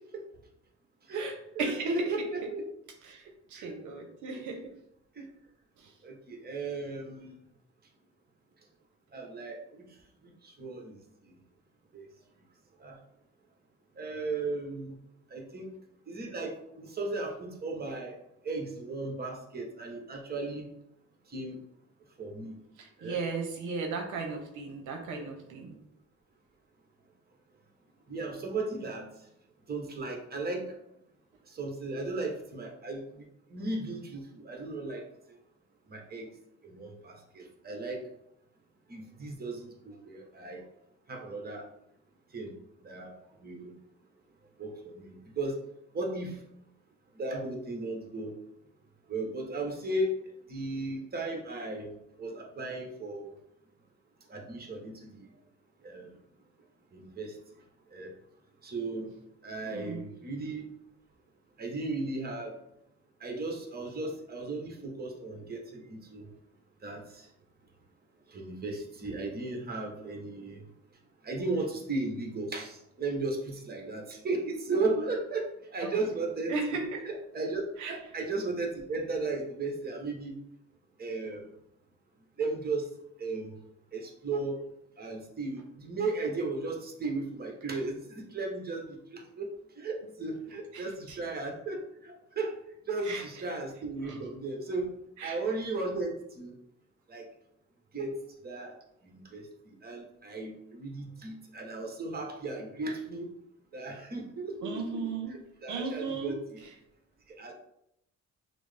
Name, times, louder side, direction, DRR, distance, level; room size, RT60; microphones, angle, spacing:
voice 1, 1.1-2.6 3.5-3.7 4.3-4.7 5.2-5.3 6.0-7.3 9.1-9.8 10.4-11.0 11.9-12.0 12.8-13.0 14.0-15.0 15.3-15.7 16.1-18.2 18.4-20.7 21.3-21.6 22.2-22.6 23.0-23.2 28.1-29.0 29.7-30.6 31.5-33.2 33.5-35.0 35.9-36.3 36.6-38.0 38.9-40.6 41.1-41.6 42.3-42.6 42.8-43.7 44.6-45.6 45.9-46.4 47.2-48.3 49.1-50.1 50.5-51.9 52.2-53.3 54.3-55.3 55.8-56.1 56.9-57.4 57.9-58.1 58.6-59.1 59.4-60.7 61.6-62.5 63.2-66.3 66.8-67.3 68.3-70.6 71.2-76.8 77.0-80.3 81.0-81.4 82.4-82.9 83.2-83.5 83.9-84.6 85.0-89.5 89.8-92.6 92.9-94.9 95.2-96.5 97.1-97.3 97.9-98.2 98.4-98.7 99.0-99.5 99.8-103.3 103.7-106.6 107.4-107.5, right 3 dB, 30° right, 1 dB, 1.1 m, -35 dB
voice 2, 1.6-2.3 3.0-4.7 5.8-5.9 22.8-25.8 59.7-60.1 75.8-76.0 76.5-77.0 77.8-78.0 90.7-91.2 93.0-93.2 94.0-94.2 95.2-95.4 104.6-105.3 105.7-106.3, right 4 dB, 80° right, 3 dB, 0.7 m, -36 dB
6.0 x 2.0 x 3.3 m, 0.79 s
cardioid pair, 90°, 30 cm